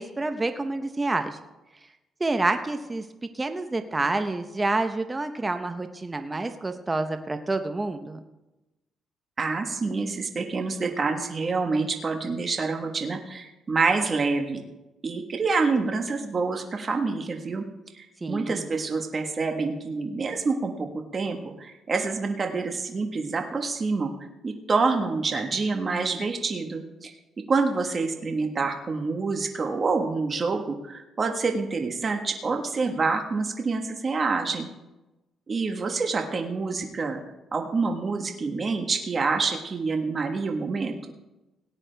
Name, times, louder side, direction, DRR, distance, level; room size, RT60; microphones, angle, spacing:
voice 1, 0.0-1.4 2.2-3.0 3.3-8.2 18.2-18.7, right 2 dB, 20° right, 8 dB, 0.8 m, -28 dB
voice 2, 9.4-14.6 15.0-17.6 17.9-24.1 24.4-27.1 27.5-34.7 35.5-37.2 37.5-41.0, right 4 dB, 40° right, 4 dB, 1.4 m, -27 dB
18.0 x 9.8 x 3.4 m, 1.0 s
cardioid pair, 90°, 0 cm